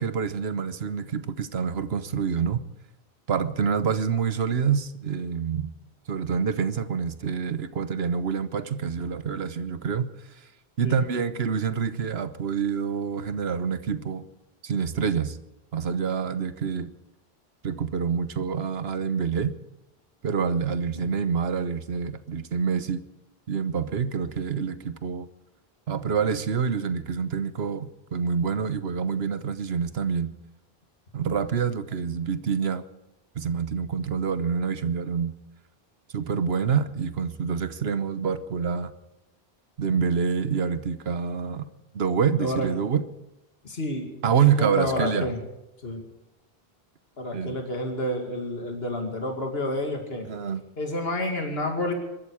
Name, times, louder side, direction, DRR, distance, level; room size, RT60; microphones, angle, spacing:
voice 1, 0.0-2.6 3.3-5.7 6.1-10.1 10.8-14.2 14.6-15.4 15.7-16.9 17.6-19.5 20.2-23.0 23.5-25.3 25.9-30.3 31.1-32.8 33.3-35.3 36.1-38.9 39.8-41.7 41.9-43.1 44.2-45.3 47.3-47.6 50.2-50.6, right 6 dB, 75° right, 1.3 m, -27 dB
voice 2, 42.4-42.7 43.6-44.1 44.4-45.4 45.8-46.0 47.2-50.3 50.8-51.9, left 1 dB, 70° left, 2.6 m, -29 dB
22.5 x 13.0 x 4.9 m
omnidirectional pair, 1.1 m